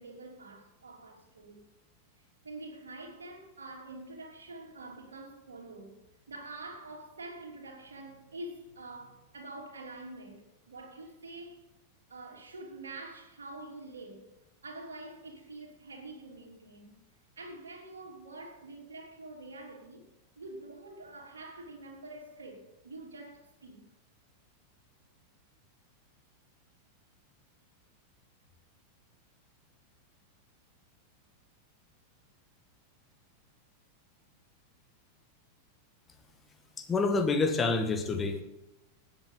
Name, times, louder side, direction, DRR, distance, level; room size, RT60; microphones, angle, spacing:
voice 1, 0.0-1.6 2.4-6.0 6.3-11.6 12.1-14.3 14.6-17.0 17.4-20.1 20.4-23.8, right 2 dB, 70° right, 3.1 m, -46 dB
voice 2, 36.8-38.4, left 3 dB, 15° left, 1.9 m, -27 dB
19.0 x 8.3 x 4.0 m
figure-of-eight pair, 90°, 0 cm